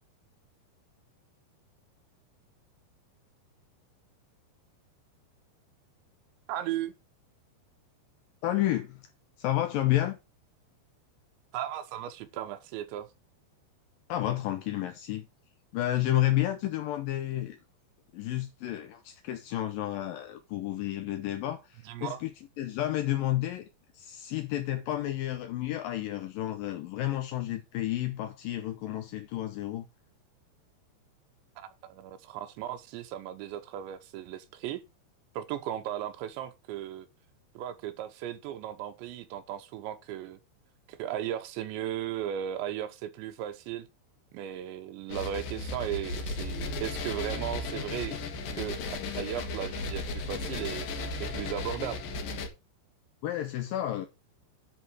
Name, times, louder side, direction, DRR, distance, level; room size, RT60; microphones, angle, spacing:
voice 1, 6.5-6.9 11.5-13.1 21.9-22.2 31.6-34.8 35.3-37.1 37.5-40.4 40.9-43.9 44.3-48.2 48.5-50.9 51.2-52.0, right 11 dB, 85° right, 3.3 m, -36 dB
voice 2, 8.4-9.0 9.4-10.2 14.1-15.3 15.7-17.6 18.1-23.7 23.9-29.9 53.2-54.1, left 14 dB, 80° left, 2.0 m, -31 dB
sound 1, 45.1-52.5, left 3 dB, 60° left, 2.8 m, -35 dB
10.5 x 4.7 x 6.1 m
omnidirectional pair, 5.1 m